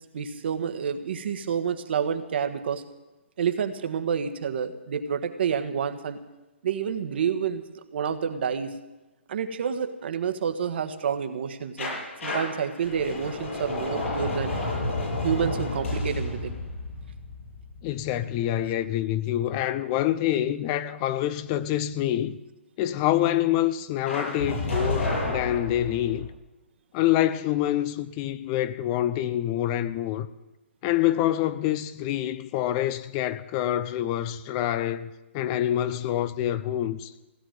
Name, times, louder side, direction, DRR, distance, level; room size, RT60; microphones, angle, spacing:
voice 1, 0.1-2.8 3.4-6.2 6.6-7.6 7.9-8.8 9.3-11.9 12.2-14.6 15.2-16.6, right 7 dB, 55° right, 1.5 m, -28 dB
sound 1, 11.8-18.6 24.1-26.3, left 2 dB, 80° left, 7.7 m, -31 dB
voice 2, 17.8-22.4 22.8-26.3 26.9-30.3 30.8-37.1, left 12 dB, 30° left, 0.6 m, -26 dB
16.5 x 8.8 x 9.1 m
hypercardioid pair, 145°, 7 cm